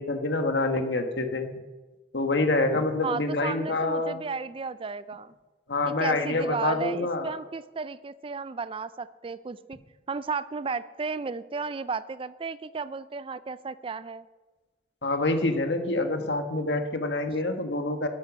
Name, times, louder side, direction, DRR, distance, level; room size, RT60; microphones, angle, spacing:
voice 1, 0.0-1.5 2.1-4.2 5.7-7.3 15.0-18.1, left 2 dB, 80° left, 6 dB, 1.6 m, -26 dB
voice 2, 3.0-5.3 5.9-9.8 10.1-14.3, right 4 dB, 30° right, 16 dB, 0.4 m, -34 dB
12.5 x 12.0 x 6.3 m, 1.2 s
head